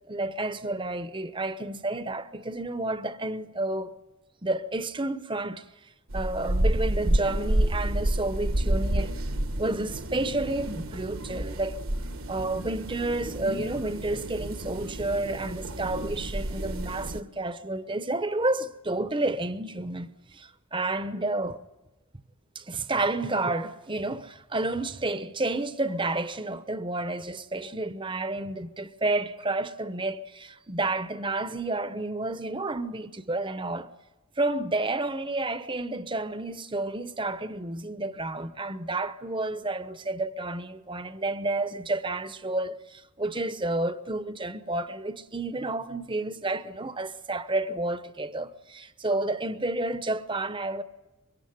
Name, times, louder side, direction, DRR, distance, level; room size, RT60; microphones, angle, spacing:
voice 1, 0.1-3.9 4.4-5.7 6.1-9.1 9.6-11.8 12.3-21.6 22.5-33.9 34.4-50.8, right 2 dB, 20° right, 0.9 m, -30 dB
sound 1, 6.1-17.2, right 1 dB, 65° right, 1.4 m, -30 dB
24.5 x 22.5 x 9.5 m
head